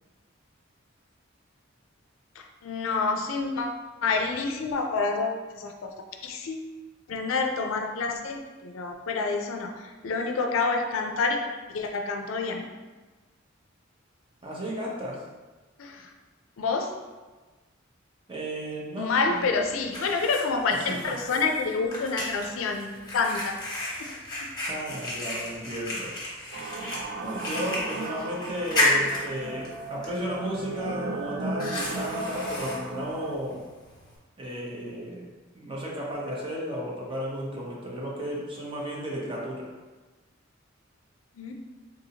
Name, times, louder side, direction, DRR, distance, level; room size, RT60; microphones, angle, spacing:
voice 1, 2.4-6.7 7.1-11.4 11.7-12.7 15.8-16.1 16.6-16.9 19.0-23.6 24.0-24.5 41.3-41.5, left 4 dB, 80° left, 3 dB, 0.4 m, -28 dB
voice 2, 14.4-15.2 18.3-19.5 20.9-21.1 24.6-26.8 27.2-33.7 34.4-39.7, equal, 25° right, -4 dB, 0.7 m, -34 dB
Fire, 19.2-34.2, left 1 dB, 20° left, 1.1 m, -33 dB
sound 1, 26.5-33.4, right 2 dB, 55° right, 0.3 m, -35 dB
3.7 x 2.7 x 2.8 m, 1.3 s
head